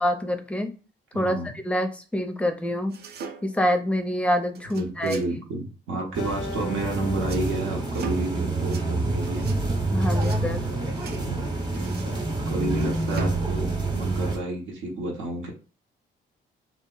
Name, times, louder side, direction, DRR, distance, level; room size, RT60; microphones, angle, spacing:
voice 1, 0.0-0.7 1.1-3.0 3.4-5.2 9.9-10.6, equal, 5° left, 6 dB, 0.4 m, -26 dB
voice 2, 1.1-1.5 4.8-9.5 11.1-11.5 12.5-15.5, right 2 dB, 85° right, 0 dB, 0.8 m, -31 dB
sound 1, 2.9-3.7 4.5-5.3 7.1-7.5 7.9-8.3 8.6-8.9 9.2-9.6 10.1-10.4 11.0-11.2 11.7-12.2 12.6-13.4 13.9-14.3, right 5 dB, 55° right, 0.5 m, -41 dB
sound 2, 6.1-14.4, right 2 dB, 20° right, 0.8 m, -27 dB
Acoustic guitar, 6.2-9.5, left 5 dB, 75° left, 0.5 m, -41 dB
2.1 x 2.0 x 3.7 m, 0.35 s
cardioid pair, 90°, 20 cm